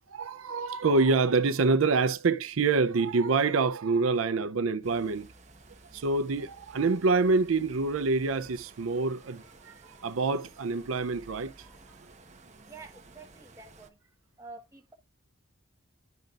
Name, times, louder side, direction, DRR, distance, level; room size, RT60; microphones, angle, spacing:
voice 1, 0.1-5.3 5.9-11.7, right 4 dB, 85° right, 0.5 m, -26 dB
sound 1, 4.8-13.9, right 2 dB, 35° right, 1.0 m, -54 dB
voice 2, 12.7-14.1 14.4-14.9, right 3 dB, 15° right, 1.3 m, -48 dB
10.5 x 5.2 x 2.5 m
head